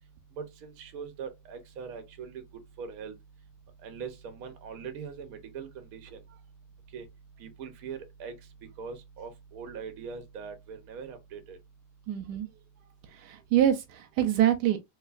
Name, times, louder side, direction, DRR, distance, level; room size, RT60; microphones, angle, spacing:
voice 1, 0.4-2.4 2.8-3.1 3.8-6.2 6.9-7.0 7.4-8.4 8.8-11.6, right 6 dB, 65° right, 1.2 m, -41 dB
voice 2, 12.1-12.5 13.2-14.8, right 11 dB, 85° right, 1.2 m, -25 dB
3.3 x 3.1 x 2.4 m
omnidirectional pair, 1.7 m